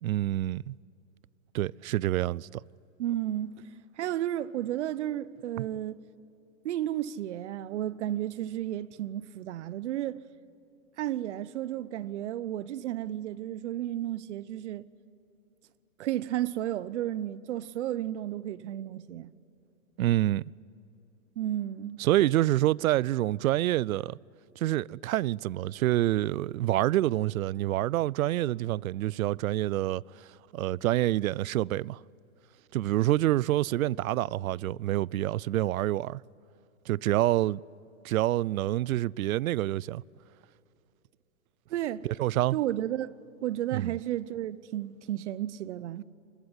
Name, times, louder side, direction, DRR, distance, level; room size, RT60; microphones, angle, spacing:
voice 1, 0.0-0.8 1.5-2.6 5.6-5.7 20.0-20.4 22.0-24.2 24.6-32.0 32.7-36.2 36.9-37.6 38.0-40.0 42.0-42.6 43.7-44.0, right 15 dB, 80° right, 0.5 m, -27 dB
voice 2, 3.0-3.7 4.0-6.1 6.6-10.2 11.0-14.8 16.0-19.3 21.4-22.0 41.7-42.1 42.5-43.1 43.4-46.0, right 12 dB, 55° right, 0.9 m, -33 dB
26.5 x 21.0 x 9.8 m
hypercardioid pair, 150°, 41 cm